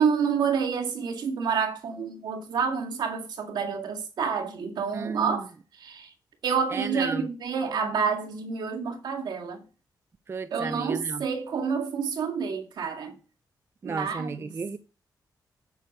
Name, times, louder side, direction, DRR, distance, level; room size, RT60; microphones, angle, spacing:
voice 1, 0.0-5.5 5.8-6.1 6.4-9.6 10.5-13.1 13.8-14.5, right 6 dB, 85° right, 2.1 m, -28 dB
voice 2, 4.9-5.5 6.7-7.3 10.3-11.3 13.8-14.8, right 4 dB, 35° right, 0.6 m, -33 dB
8.6 x 7.9 x 6.6 m
wide cardioid pair, 125°, 7 cm